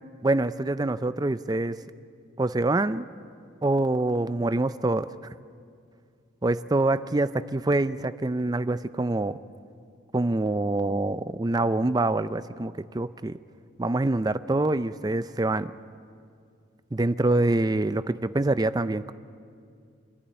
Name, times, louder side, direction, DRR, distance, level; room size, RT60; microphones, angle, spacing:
voice 1, 0.2-1.8 2.4-3.1 3.6-5.1 6.4-9.4 10.1-13.4 13.8-15.7 16.9-19.1, right 2 dB, 20° right, 13 dB, 0.4 m, -25 dB
26.5 x 11.5 x 10.0 m, 2.3 s
head